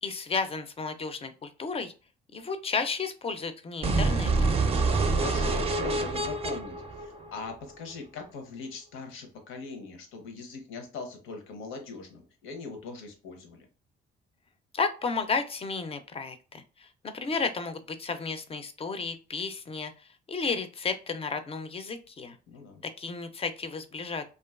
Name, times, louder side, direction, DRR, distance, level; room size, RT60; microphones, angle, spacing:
voice 1, 0.0-1.9 2.3-4.5 14.7-16.9 17.1-22.4 23.0-24.2, left 4 dB, 30° left, 9 dB, 0.4 m, -33 dB
sound 1, 3.8-7.8, right 3 dB, 30° right, 0.4 m, -27 dB
voice 2, 5.0-13.7 22.5-22.8, left 4 dB, 85° left, 5 dB, 0.7 m, -41 dB
2.5 x 2.3 x 2.3 m, 0.34 s
cardioid pair, 90°, 20 cm